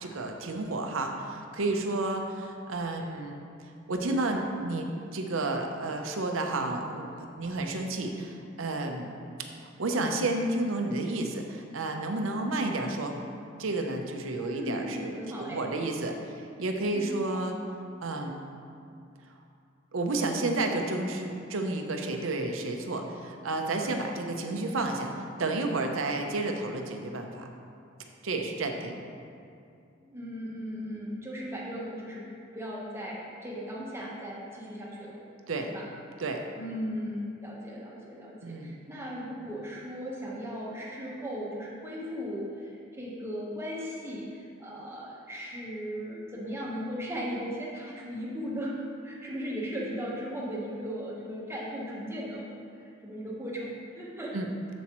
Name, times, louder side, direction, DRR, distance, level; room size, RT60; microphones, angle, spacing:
voice 1, 0.0-3.4 3.9-9.1 9.8-13.2 13.6-16.1 16.6-17.6 18.0-18.5 19.9-27.5 28.2-29.0 35.5-35.7 36.2-36.4 38.4-38.8 54.3-54.5, right 2 dB, 80° right, 4 dB, 0.7 m, -31 dB
voice 2, 14.3-15.6 16.9-17.4 30.1-32.2 32.5-35.2 35.7-35.9 36.5-48.7 49.0-52.6 53.0-54.4, equal, 15° right, -5 dB, 1.1 m, -37 dB
7.2 x 7.1 x 3.0 m, 2.5 s
head